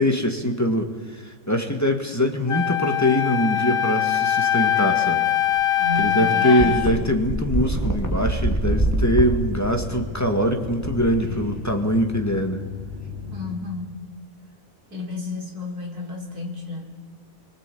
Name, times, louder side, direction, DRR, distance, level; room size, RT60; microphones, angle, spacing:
voice 1, 0.0-5.3 6.0-12.6, equal, 10° left, 4 dB, 1.9 m, -23 dB
Wind instrument woodwind instrument, 2.5-6.9, left 11 dB, 60° left, 1.4 m, -22 dB
sound 1, 5.6-5.7 6.0-6.1 6.6-11.8, right 1 dB, 10° right, 3.1 m, -26 dB
voice 2, 5.8-7.1 13.3-14.1 14.9-16.9, left 3 dB, 75° right, 0 dB, 4.5 m, -32 dB
sound 2, 8.0-13.6, left 5 dB, 35° right, 6.6 m, -35 dB
26.0 x 24.0 x 8.5 m, 1.5 s
omnidirectional pair, 1.6 m